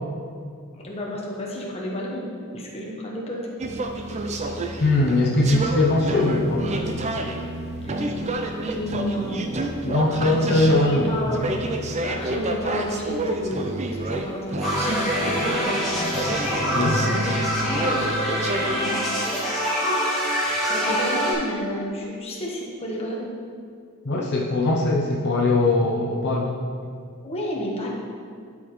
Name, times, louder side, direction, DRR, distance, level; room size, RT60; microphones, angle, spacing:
voice 1, 0.8-3.5 7.8-8.0 8.6-9.5 10.1-11.6 12.0-13.7 14.1-15.7 17.0-17.4 17.7-18.1 18.7-19.1 20.6-23.3 27.2-27.9, equal, 25° left, -3 dB, 1.2 m, -31 dB
sound 1, 3.6-18.8, right 2 dB, 30° right, 0.5 m, -28 dB
voice 2, 4.8-6.7 9.8-11.1 16.6-17.0 24.0-26.5, left 2 dB, 50° left, -3 dB, 0.7 m, -21 dB
sound 2, 14.6-21.3, equal, ahead, 1.9 m, -25 dB
11.5 x 4.9 x 3.1 m, 2.2 s
head